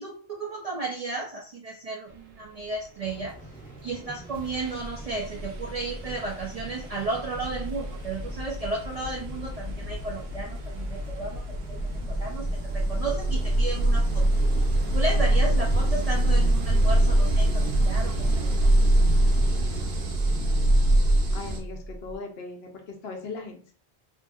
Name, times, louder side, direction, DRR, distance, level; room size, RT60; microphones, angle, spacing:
voice 1, 0.0-3.3 3.8-11.4 11.7-11.8 12.1-12.4 12.7-14.2 14.9-18.1 18.4-18.5, right 3 dB, 55° right, -2 dB, 0.4 m, -33 dB
sound 1, 3.0-15.6, right 1 dB, 10° left, 0.7 m, -46 dB
sound 2, 3.8-4.0 4.3-21.6, right 1 dB, 70° right, 0.8 m, -25 dB
sound 3, 4.8-22.2, right 1 dB, 35° right, 0.8 m, -40 dB
voice 2, 21.3-23.7, left 3 dB, 70° left, 3 dB, 0.9 m, -39 dB
2.7 x 2.6 x 2.3 m, 0.43 s
omnidirectional pair, 1.1 m